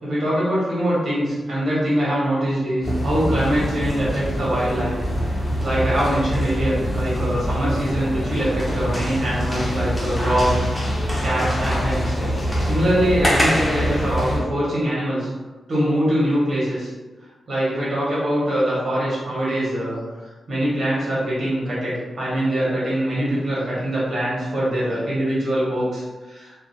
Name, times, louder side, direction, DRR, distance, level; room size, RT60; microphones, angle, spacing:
voice 1, 0.0-4.9 5.3-10.7 11.2-15.3 15.7-16.9 17.2-26.5, equal, 50° right, -8 dB, 1.2 m, -23 dB
sound 1, 2.8-14.4, equal, 15° left, 0.5 m, -24 dB
2.6 x 2.2 x 2.7 m, 1.2 s
wide cardioid pair, 165°, 0 cm